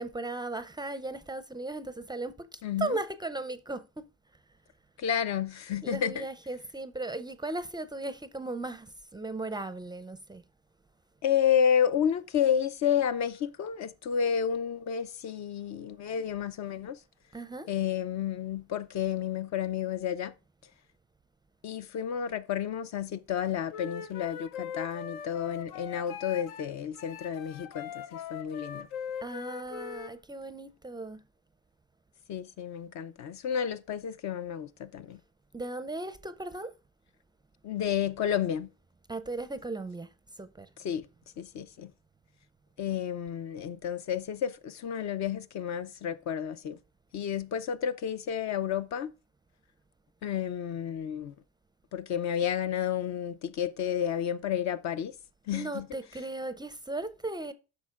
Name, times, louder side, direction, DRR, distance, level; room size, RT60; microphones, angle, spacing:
voice 1, 0.0-4.0 5.8-10.4 17.3-17.7 29.2-31.2 35.5-36.7 39.1-40.1 40.4-40.7 55.5-57.5, right 2 dB, 10° right, 0.5 m, -37 dB
voice 2, 2.6-3.0 5.0-6.3 11.2-17.0 17.7-20.3 21.6-28.9 32.3-35.2 37.6-38.7 40.8-41.1 41.4-41.9 42.8-46.8 47.1-49.1 50.2-51.3 51.9-55.1 55.5-55.9, left 8 dB, 50° left, 0.6 m, -31 dB
Wind instrument woodwind instrument, 23.7-26.7 26.9-30.1, left 8 dB, 75° left, 0.8 m, -41 dB
10.0 x 6.4 x 2.4 m
supercardioid pair, 80°, 37 cm